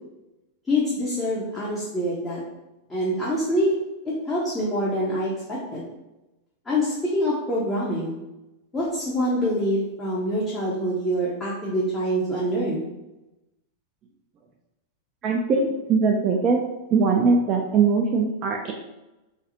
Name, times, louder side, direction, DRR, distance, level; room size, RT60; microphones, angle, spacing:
voice 1, 0.7-2.4 2.9-3.7 4.0-5.8 6.7-8.1 8.7-12.8, equal, 15° left, -7 dB, 0.6 m, -25 dB
voice 2, 15.2-16.6 16.9-18.7, right 4 dB, 30° right, 0 dB, 0.3 m, -21 dB
2.5 x 2.3 x 2.7 m, 0.98 s
figure-of-eight pair, 90°, 0 cm